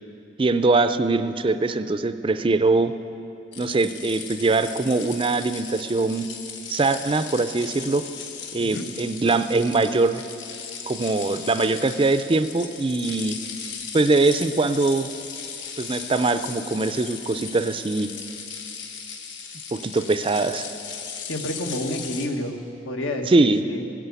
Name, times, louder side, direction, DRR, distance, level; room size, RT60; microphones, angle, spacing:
voice 1, 0.4-2.9 3.6-6.3 6.7-8.1 8.5-10.2 10.9-13.4 13.9-15.1 15.8-18.1 19.7-20.6 23.3-23.6, right 3 dB, 25° right, 11 dB, 0.4 m, -22 dB
sound 1, 3.5-22.3, left 6 dB, 65° left, 1.4 m, -37 dB
voice 2, 21.3-22.6 22.9-23.8, left 1 dB, 85° left, 4 dB, 1.4 m, -29 dB
15.5 x 9.8 x 8.2 m, 2.8 s
head